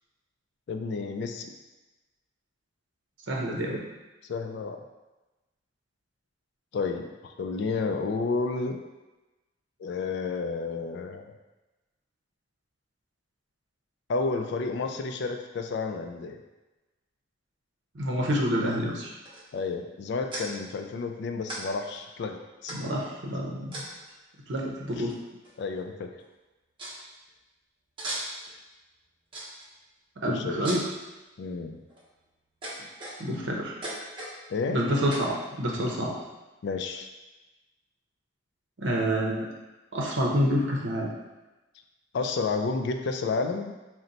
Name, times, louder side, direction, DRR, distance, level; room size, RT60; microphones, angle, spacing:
voice 1, 0.7-1.5 4.3-4.8 6.7-8.8 9.8-11.2 14.1-16.4 19.5-22.7 25.0-25.1 25.6-26.1 30.2-30.7 31.4-31.8 34.5-34.8 36.6-37.1 42.1-43.7, left 4 dB, 60° left, 5 dB, 0.3 m, -31 dB
voice 2, 3.3-3.8 17.9-19.1 22.7-23.8 24.5-25.2 30.2-30.8 33.2-33.7 34.7-36.1 38.8-39.5 39.9-41.1, equal, 65° right, -1 dB, 0.7 m, -28 dB
sound 1, 19.3-19.6 20.3-20.5 21.5-21.6 21.9-22.0 22.7-23.1 23.7-24.1 25.1-25.2 25.4-25.8 26.2-26.3 26.8-27.0 28.0-28.5 29.3-29.7 30.6-31.0 31.7-32.0 32.6-33.4 33.8-34.4 35.1-35.3, right 1 dB, 25° right, 0.7 m, -37 dB
3.9 x 2.1 x 4.0 m, 1.1 s
head